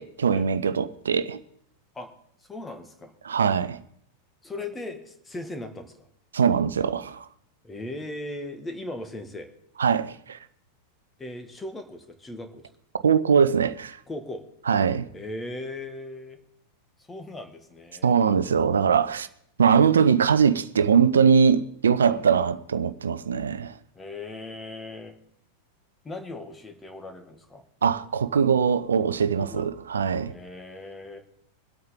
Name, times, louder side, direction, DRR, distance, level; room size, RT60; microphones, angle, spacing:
voice 1, 0.0-1.4 3.2-3.8 6.3-7.2 9.8-10.4 13.0-14.0 14.7-15.0 18.0-19.3 19.6-23.7 27.8-30.3, right 6 dB, 70° right, 0.7 m, -21 dB
voice 2, 2.4-3.1 4.4-6.1 7.6-9.5 11.2-12.7 14.1-14.4 15.1-16.4 17.0-18.2 22.0-22.3 23.9-25.1 26.0-27.6 29.4-29.7 30.3-31.2, left 2 dB, 15° left, 1.8 m, -38 dB
23.0 x 8.7 x 3.8 m
figure-of-eight pair, 90°, 0 cm